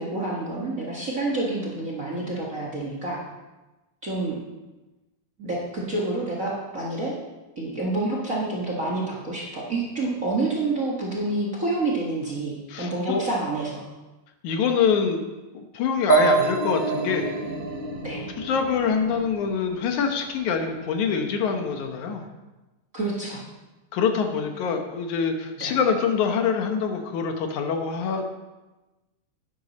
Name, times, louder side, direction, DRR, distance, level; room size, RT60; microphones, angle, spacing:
voice 1, 0.0-3.2 4.0-4.4 5.4-7.1 7.6-13.8 16.2-16.3 18.0-18.2 22.9-23.4 25.6-25.7, right 2 dB, 35° right, -3 dB, 1.4 m, -28 dB
voice 2, 12.7-13.2 14.4-15.2 15.5-17.3 18.4-22.3 23.9-28.3, left 6 dB, 75° left, 5 dB, 2.4 m, -25 dB
sound 1, 16.1-19.8, right 5 dB, 60° right, 1.2 m, -26 dB
11.5 x 10.0 x 4.1 m, 1.1 s
omnidirectional pair, 3.5 m